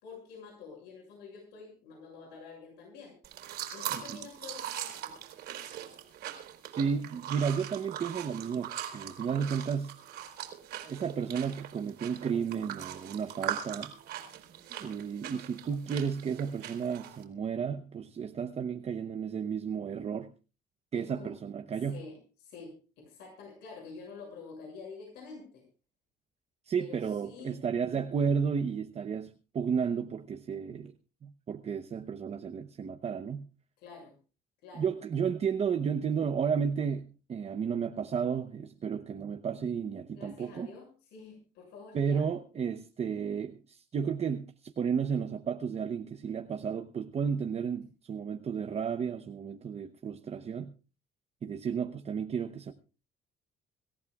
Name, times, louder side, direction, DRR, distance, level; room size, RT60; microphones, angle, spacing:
voice 1, 0.0-3.1 3.7-5.1 20.9-21.3 21.9-25.6 26.8-27.6 33.8-34.1 34.6-34.9 40.1-42.3, left 5 dB, 90° left, 6.7 m, -48 dB
sound 1, 3.2-17.2, right 11 dB, 75° right, 3.8 m, -41 dB
voice 2, 3.9-4.3 6.7-9.9 10.8-13.9 14.8-20.3 20.9-22.0 26.7-30.9 31.2-33.5 34.7-40.7 41.9-50.7 51.4-52.7, right 6 dB, 40° right, 0.9 m, -33 dB
25.5 x 14.0 x 2.4 m
cardioid pair, 110°, 17 cm